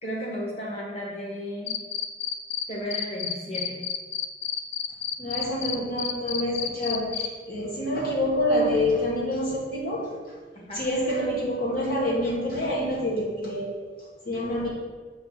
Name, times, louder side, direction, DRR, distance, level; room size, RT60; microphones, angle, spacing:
voice 1, 0.0-1.8 2.7-3.8 10.5-10.8, equal, 35° left, -3 dB, 1.8 m, -34 dB
Cricket, 1.7-2.6 2.9-7.3, left 9 dB, 70° left, 0.6 m, -29 dB
voice 2, 5.2-10.1 10.7-13.7 14.2-14.7, left 1 dB, 55° left, -4 dB, 1.5 m, -27 dB
7.2 x 4.8 x 5.9 m, 1.4 s
head